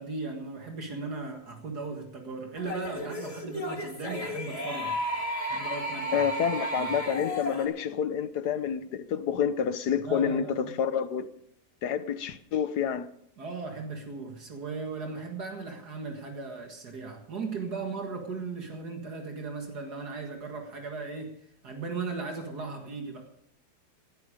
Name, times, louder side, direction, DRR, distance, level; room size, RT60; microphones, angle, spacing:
voice 1, 0.0-5.0 5.5-6.3 6.8-6.9 10.1-10.7 13.4-21.4 21.6-23.3, right 4 dB, 70° right, 2.4 m, -37 dB
sound 1, 2.6-7.6, equal, 20° left, 2.4 m, -33 dB
voice 2, 6.1-11.3 11.8-13.1, left 8 dB, 75° left, 1.5 m, -28 dB
18.5 x 12.5 x 5.0 m
omnidirectional pair, 1.8 m